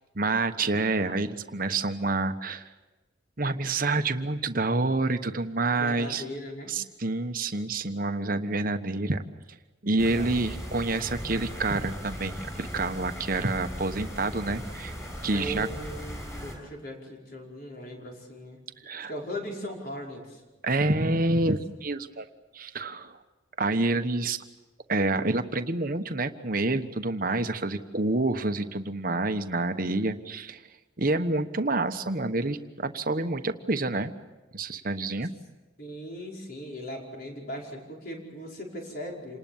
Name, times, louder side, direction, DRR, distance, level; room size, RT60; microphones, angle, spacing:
voice 1, 0.1-2.7 3.4-6.2 6.7-9.2 9.8-14.9 15.2-15.7 18.8-19.1 20.6-22.3 22.5-23.2 23.6-24.4 24.9-30.6 31.0-34.1 34.5-35.3, right 2 dB, 45° right, 9 dB, 1.2 m, -28 dB
voice 2, 5.7-6.7 10.1-10.4 15.3-18.6 19.0-20.4 35.8-39.4, equal, 50° left, -1 dB, 5.2 m, -39 dB
sound 1, 10.0-16.5, equal, 15° left, 7.3 m, -38 dB
28.0 x 19.5 x 7.3 m, 1.1 s
head